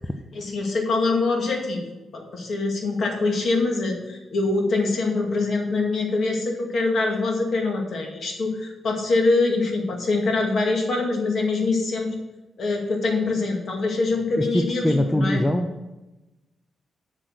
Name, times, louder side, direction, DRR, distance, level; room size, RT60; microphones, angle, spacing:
voice 1, 0.3-1.8 2.1-12.1 12.6-15.4, left 3 dB, 55° left, 1 dB, 2.1 m, -24 dB
voice 2, 14.4-15.9, left 1 dB, 15° left, 7 dB, 0.6 m, -23 dB
7.6 x 6.6 x 6.2 m, 1.1 s
cardioid pair, 110°, 0 cm